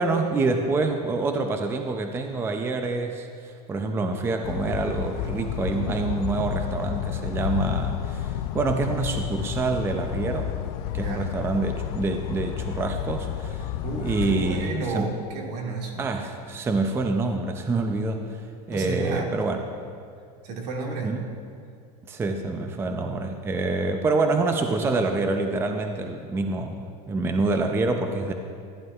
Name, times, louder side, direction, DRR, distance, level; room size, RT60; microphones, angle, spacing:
voice 1, 0.0-10.5 10.9-13.7 14.0-15.1 16.0-18.4 18.7-19.6 21.0-21.3 22.1-28.3, right 3 dB, 10° right, 5 dB, 0.5 m, -26 dB
sound 1, 4.4-14.7, left 11 dB, 65° left, 0.5 m, -31 dB
voice 2, 10.9-11.3 13.8-16.1 18.7-19.3 20.4-21.1, right 3 dB, 80° right, 0 dB, 2.0 m, -32 dB
14.5 x 11.0 x 2.4 m, 2.3 s
supercardioid pair, 145°, 21 cm